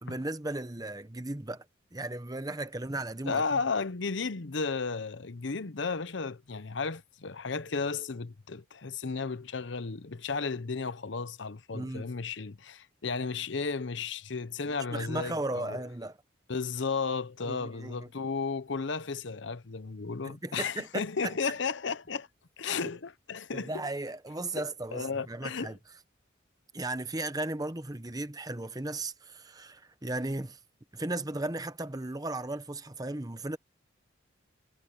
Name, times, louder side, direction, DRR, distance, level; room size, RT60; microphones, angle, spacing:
voice 1, 0.0-1.6 1.9-3.4 11.7-12.1 14.9-16.2 17.4-18.1 20.2-21.3 23.5-25.8 26.7-30.6 30.9-33.6, right 2 dB, 20° right, 0.9 m, -36 dB
voice 2, 3.2-15.8 16.5-22.3 22.6-23.9 24.6-25.8, left 4 dB, 65° left, 0.8 m, -34 dB
head